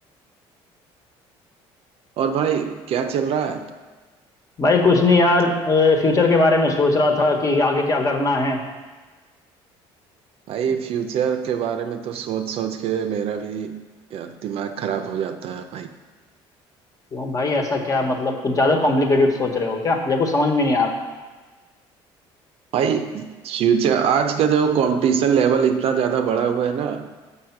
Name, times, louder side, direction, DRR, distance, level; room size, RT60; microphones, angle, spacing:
voice 1, 2.2-3.7 10.5-13.8 14.1-15.9 22.7-27.1, right 7 dB, 60° right, 7 dB, 0.6 m, -23 dB
voice 2, 4.6-8.6 17.1-21.0, left 3 dB, 30° left, 2 dB, 1.2 m, -19 dB
6.4 x 5.5 x 5.9 m, 1.3 s
cardioid pair, 100°, 11 cm